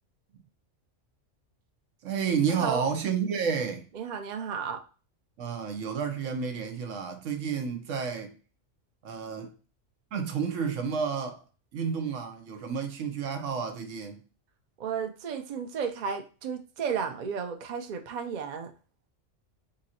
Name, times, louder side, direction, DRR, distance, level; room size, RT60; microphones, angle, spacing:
voice 1, 2.0-3.9 5.4-8.3 9.0-9.5 10.1-11.4 11.7-14.2, right 6 dB, 90° right, 1.1 m, -30 dB
voice 2, 3.9-4.8 14.8-18.7, right 6 dB, 50° right, 0.6 m, -33 dB
3.8 x 2.6 x 4.1 m
omnidirectional pair, 1.3 m